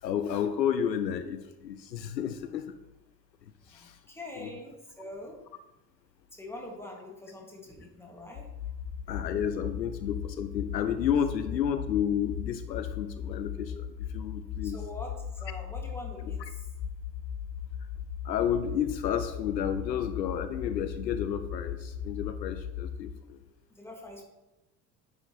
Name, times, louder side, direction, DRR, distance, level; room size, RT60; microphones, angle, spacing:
voice 1, 0.0-2.7 3.7-4.0 4.4-4.5 9.1-13.9 14.1-14.8 18.2-23.4, left 8 dB, 80° left, 10 dB, 0.5 m, -31 dB
voice 2, 3.7-5.4 6.3-8.5 11.3-11.4 14.6-16.7 23.7-24.2, left 1 dB, 5° left, 0 dB, 1.7 m, -44 dB
sound 1, 8.4-23.1, left 8 dB, 45° left, 0.8 m, -38 dB
9.4 x 5.6 x 2.9 m, 1.0 s
figure-of-eight pair, 60°, 50 cm